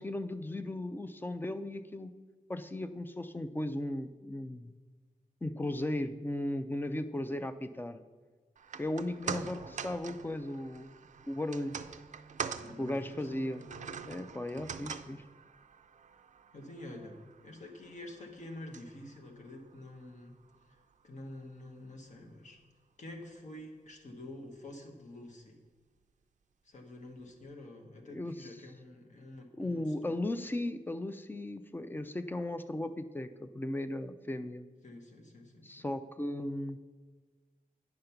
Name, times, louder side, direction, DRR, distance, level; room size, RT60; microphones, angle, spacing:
voice 1, 0.0-2.1 2.5-4.7 5.4-8.0 8.8-10.9 11.3-11.7 12.8-13.6 14.0-15.2 28.1-28.5 29.6-34.7 35.6-36.8, left 1 dB, 15° left, 10 dB, 0.4 m, -36 dB
sound 1, 8.6-20.9 21.3-21.4, right 6 dB, 55° right, 0.4 m, -45 dB
voice 2, 12.6-13.7 16.5-20.4 20.7-20.8 21.0-22.6 23.0-25.6 26.6-30.2 34.8-35.9, left 1 dB, 55° left, 2 dB, 1.3 m, -48 dB
9.6 x 5.2 x 5.8 m, 1.5 s
wide cardioid pair, 160°, 15 cm